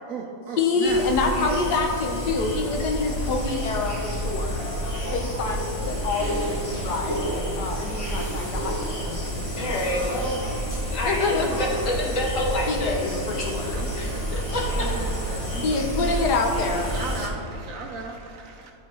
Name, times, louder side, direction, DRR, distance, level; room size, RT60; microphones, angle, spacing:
voice 1, 0.0-1.1 1.4-3.2 3.7-3.9 13.2-13.5 13.7-18.7, right 4 dB, 65° right, 2 dB, 0.9 m, -38 dB
voice 2, 0.6-4.6 5.1-7.3 7.6-9.4 9.7-10.6 11.1-11.5 12.7-13.8 15.6-16.9, left 3 dB, 75° left, 2 dB, 1.4 m, -27 dB
sound 1, 0.8-17.3, equal, 20° left, 1.0 m, -29 dB
voice 3, 4.8-5.3 7.9-8.0 9.6-10.4 10.9-13.0 13.4-13.5 14.0-14.9, left 1 dB, 50° left, -2 dB, 1.6 m, -28 dB
12.5 x 4.5 x 4.3 m, 2.6 s
omnidirectional pair, 1.8 m